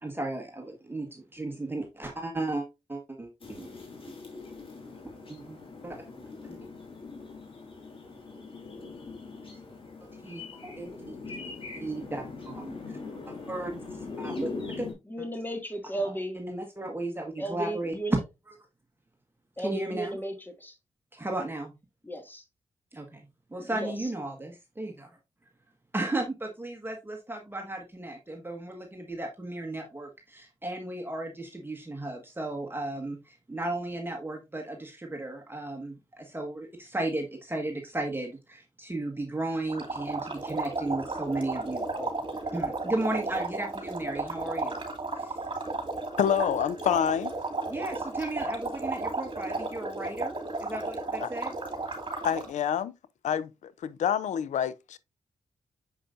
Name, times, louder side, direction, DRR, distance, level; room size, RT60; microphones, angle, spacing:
voice 1, 0.0-3.7 5.3-5.6 5.8-6.0 6.5-6.6 10.0-11.2 11.8-12.7 13.3-13.8 14.2-14.5 14.8-14.9 16.4-17.9 19.6-20.2 21.1-21.7 22.9-25.1 25.9-42.2 42.5-44.8 45.2-45.4 47.7-51.5, right 2 dB, 15° right, 1.5 m, -35 dB
sound 1, 3.4-14.9, left 3 dB, 45° left, 2.9 m, -41 dB
voice 2, 15.1-16.4 17.4-18.2 19.6-20.8 22.0-22.4 23.6-24.1, right 1 dB, 15° left, 2.0 m, -34 dB
sound 2, 39.7-52.5, right 3 dB, 40° right, 2.3 m, -34 dB
voice 3, 46.2-47.3 51.2-51.3 52.2-52.9 53.2-55.0, left 9 dB, 80° left, 0.5 m, -27 dB
6.7 x 5.5 x 2.5 m
cardioid pair, 55°, 12 cm